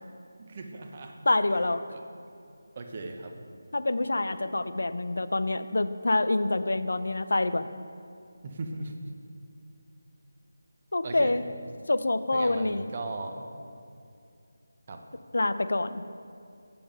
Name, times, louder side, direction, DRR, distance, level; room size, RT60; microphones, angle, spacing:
voice 1, 0.4-1.2 1.5-1.6 1.9-2.0 2.8-3.3 8.4-8.9 11.0-11.3 12.3-13.5 14.9-15.0, right 3 dB, 30° right, 3 dB, 0.7 m, -38 dB
voice 2, 1.3-1.8 3.7-7.7 10.9-11.4 11.9-12.9 15.3-16.0, left 2 dB, 75° left, 12 dB, 0.4 m, -26 dB
7.5 x 6.9 x 5.3 m, 2.5 s
figure-of-eight pair, 170°, 0 cm